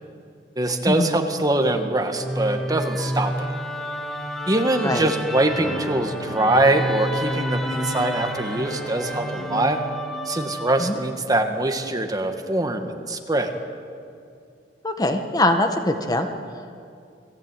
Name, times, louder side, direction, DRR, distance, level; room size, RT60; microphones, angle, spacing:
voice 1, 0.6-3.3 4.5-9.8 10.3-13.5, right 1 dB, 20° right, 5 dB, 1.9 m, -23 dB
Musical instrument, 2.2-11.4, right 1 dB, ahead, 1.5 m, -30 dB
sound 1, 5.6-11.0, left 1 dB, 55° left, 4.6 m, -36 dB
voice 2, 14.8-16.3, left 1 dB, 20° left, 6 dB, 1.5 m, -22 dB
28.5 x 20.0 x 9.3 m, 2.4 s
head